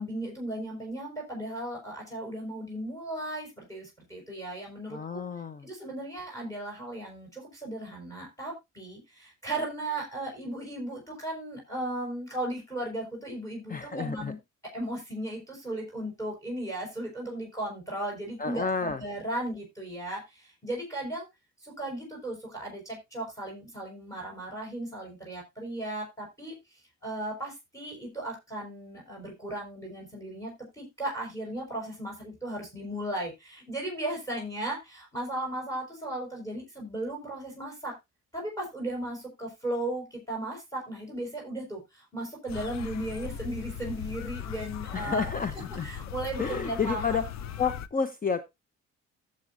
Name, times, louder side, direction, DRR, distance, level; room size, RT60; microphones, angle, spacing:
voice 1, 0.0-5.2 5.6-14.4 14.7-21.3 21.6-37.9 38.3-45.3 45.8-47.2, right 1 dB, 10° left, 0 dB, 5.5 m, -36 dB
voice 2, 4.9-5.6 13.7-14.3 18.4-19.0 44.9-45.9 46.4-47.2 47.6-48.4, left 5 dB, 30° left, 11 dB, 0.9 m, -30 dB
sound 1, 42.5-47.9, left 9 dB, 65° left, 0.8 m, -38 dB
15.5 x 7.6 x 2.7 m, 0.21 s
cardioid pair, 90°, 30 cm